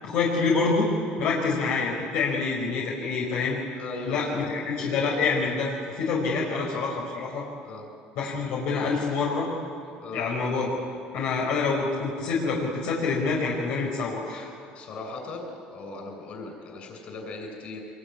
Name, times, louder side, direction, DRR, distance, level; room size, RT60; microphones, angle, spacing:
voice 1, 0.0-0.9 1.2-3.6 4.0-7.4 8.1-9.5 10.1-10.7 11.1-14.5, left 4 dB, 65° left, -2 dB, 4.8 m, -26 dB
voice 2, 3.7-4.5 6.4-6.6 7.6-7.9 10.0-10.2 14.7-17.8, left 3 dB, 45° left, 2 dB, 7.2 m, -38 dB
24.5 x 22.5 x 9.6 m, 2.4 s
cardioid pair, 140°, 3 cm